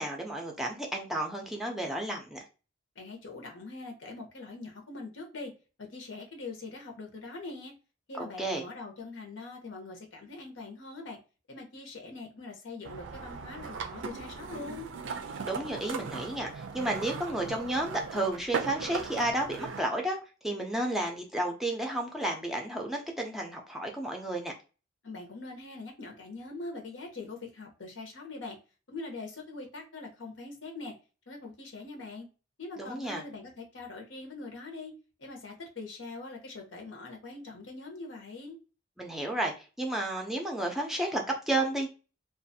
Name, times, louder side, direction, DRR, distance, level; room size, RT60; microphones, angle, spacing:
voice 1, 0.0-2.5 8.2-8.6 15.4-20.2 20.4-24.5 32.8-33.2 39.0-41.9, right 1 dB, ahead, 1 dB, 0.4 m, -32 dB
voice 2, 3.0-5.5 5.8-7.7 8.1-11.2 11.5-14.9 25.0-28.6 28.9-30.9 31.3-32.3 32.6-34.9 35.2-38.6, left 3 dB, 90° left, 2 dB, 0.8 m, -43 dB
sound 1, 12.8-19.8, right 5 dB, 85° right, 0.4 m, -38 dB
2.5 x 2.3 x 2.6 m, 0.32 s
head